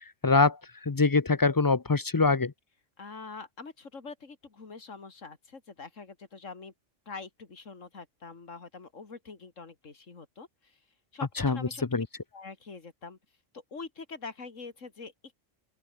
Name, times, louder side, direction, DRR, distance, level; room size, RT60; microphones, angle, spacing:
voice 1, 0.2-0.6 0.9-2.5 11.4-11.6 11.9-12.1, left 4 dB, 30° left, 0.4 m, -23 dB
voice 2, 3.0-6.7 7.1-10.8 11.1-11.9 12.3-13.2 13.5-15.1, left 4 dB, 80° left, 2.9 m, -44 dB
open air
omnidirectional pair, 1.3 m